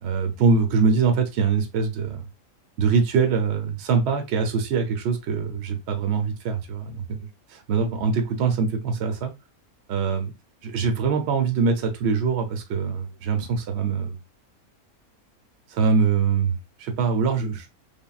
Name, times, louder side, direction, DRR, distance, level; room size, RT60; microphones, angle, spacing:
voice 1, 0.0-2.2 2.8-7.3 7.7-9.3 9.9-10.3 10.6-14.2 15.7-17.7, right 5 dB, 65° right, 0.7 m, -23 dB
3.4 x 2.1 x 2.3 m
omnidirectional pair, 1.6 m